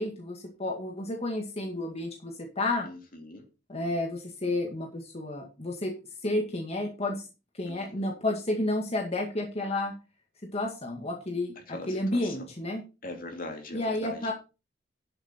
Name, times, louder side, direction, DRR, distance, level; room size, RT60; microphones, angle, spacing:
voice 1, 0.0-2.9 3.7-6.0 6.2-7.2 7.5-9.9 10.5-12.8 13.7-14.3, left 2 dB, 35° left, 1 dB, 2.1 m, -31 dB
voice 2, 2.8-3.5 7.7-8.1 11.7-12.2 13.0-14.3, left 2 dB, 50° left, 4 dB, 2.7 m, -41 dB
11.0 x 7.8 x 4.5 m, 0.30 s
head